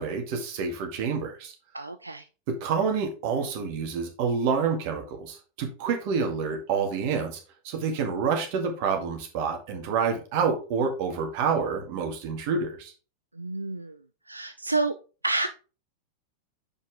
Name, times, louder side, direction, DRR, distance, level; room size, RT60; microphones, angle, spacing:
voice 1, 0.0-1.5 2.6-7.4 7.6-12.9, right 5 dB, 45° right, 3 dB, 2.0 m, -28 dB
voice 2, 1.7-2.2 13.4-14.0 14.3-15.0 15.2-15.5, right 3 dB, 85° right, 9 dB, 0.3 m, -29 dB
7.1 x 5.3 x 3.5 m, 0.35 s
figure-of-eight pair, 90°, 0 cm